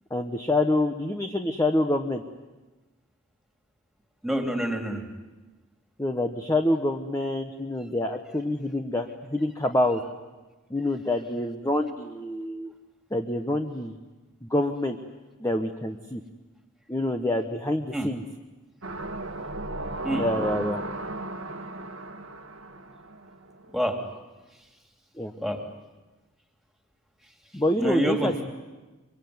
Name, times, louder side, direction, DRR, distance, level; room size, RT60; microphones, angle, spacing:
voice 1, 0.1-2.2 6.0-10.0 10.7-12.7 13.1-13.9 14.4-15.0 15.4-16.2 16.9-18.2 20.1-20.8 25.2-25.3 27.5-28.3, left 1 dB, 15° left, 4 dB, 1.1 m, -26 dB
voice 2, 4.2-5.0 17.9-18.1 20.0-20.2 23.7-24.0 25.4-25.6 27.8-28.4, equal, ahead, 3 dB, 3.0 m, -27 dB
sound 1, 18.8-23.7 24.1-24.2, right 2 dB, 85° right, 1.9 m, -35 dB
24.5 x 24.5 x 9.5 m, 1.2 s
head